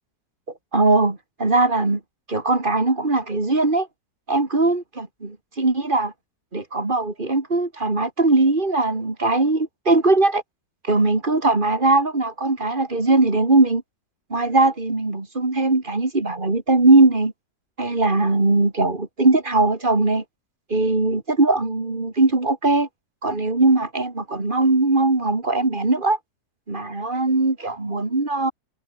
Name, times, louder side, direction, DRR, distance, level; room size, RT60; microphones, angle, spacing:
voice 1, 0.7-2.0 2.3-3.9 4.3-6.1 6.5-10.4 10.8-13.8 14.3-17.3 17.8-20.2 20.7-22.9 23.2-26.2 26.7-28.5, right 2 dB, 30° right, 3.0 m, -20 dB
omnidirectional pair, 1.7 m